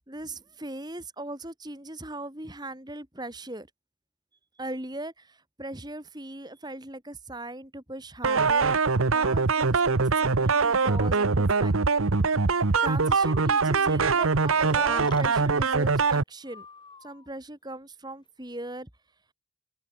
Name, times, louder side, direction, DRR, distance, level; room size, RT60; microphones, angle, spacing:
voice 1, 0.1-3.7 4.6-8.8 9.1-11.7 12.8-16.7 17.0-18.9, right 2 dB, 20° right, 2.7 m, -39 dB
sound 1, 8.2-16.2, right 4 dB, 80° right, 1.0 m, -23 dB
Breathing, 13.1-13.7 14.5-15.3 16.4-17.3, left 3 dB, 20° left, 6.5 m, -45 dB
head